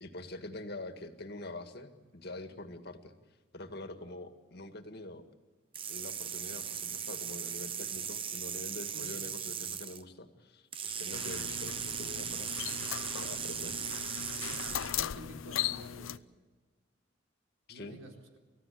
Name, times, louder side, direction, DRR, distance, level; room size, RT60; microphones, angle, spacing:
voice 1, 0.0-3.1 3.5-5.2 5.9-12.6 13.1-13.7 17.7-18.0, left 2 dB, 50° left, 7 dB, 2.0 m, -45 dB
sound 1, 5.7-10.0 10.7-15.0, right 8 dB, 25° right, 0.7 m, -38 dB
voice 2, 8.9-9.4 14.9-16.2 17.7-18.4, right 1 dB, 85° right, 2 dB, 4.1 m, -50 dB
sound 2, 11.1-16.2, left 10 dB, 85° left, 0.6 m, -38 dB
29.5 x 15.5 x 8.5 m, 1.4 s
head